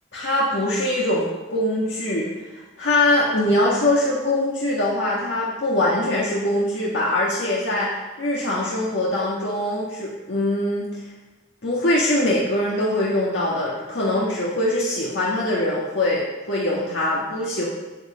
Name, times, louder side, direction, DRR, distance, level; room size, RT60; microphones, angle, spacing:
voice 1, 0.1-2.3 2.8-11.0 11.6-17.7, left 1 dB, 85° left, -5 dB, 1.6 m, -22 dB
9.4 x 5.6 x 7.6 m, 1.2 s
head